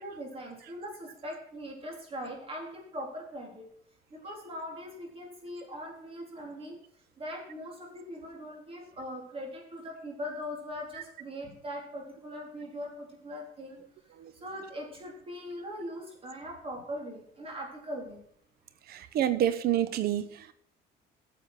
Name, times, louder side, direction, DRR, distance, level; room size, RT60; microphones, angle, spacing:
voice 1, 0.0-3.7 4.1-6.8 7.2-13.8 14.4-18.2, equal, 35° right, 1 dB, 3.9 m, -41 dB
voice 2, 18.9-20.5, right 11 dB, 65° right, 14 dB, 0.8 m, -28 dB
10.0 x 7.1 x 6.2 m, 0.66 s
cardioid pair, 110°, 17 cm